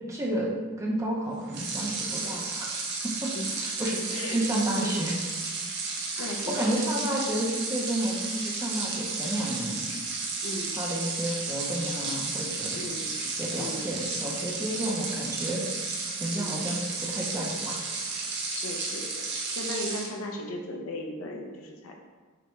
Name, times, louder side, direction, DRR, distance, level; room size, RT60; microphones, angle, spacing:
voice 1, 0.1-0.5 0.8-2.7 3.2-3.3 3.6-5.1 6.2-6.3 6.5-9.8 10.8-12.8 13.3-15.6 16.2-17.8, right 1 dB, 15° right, -4 dB, 0.6 m, -31 dB
sound 1, 1.5-20.1, right 4 dB, 55° right, 0.7 m, -33 dB
voice 2, 3.3-3.7 4.1-4.4 4.8-5.0 6.2-6.9 10.4-10.8 12.7-13.1 13.6-13.8 16.3-16.6 18.5-21.9, left 1 dB, 75° left, 2 dB, 0.6 m, -37 dB
6.0 x 2.2 x 3.1 m, 1.3 s
head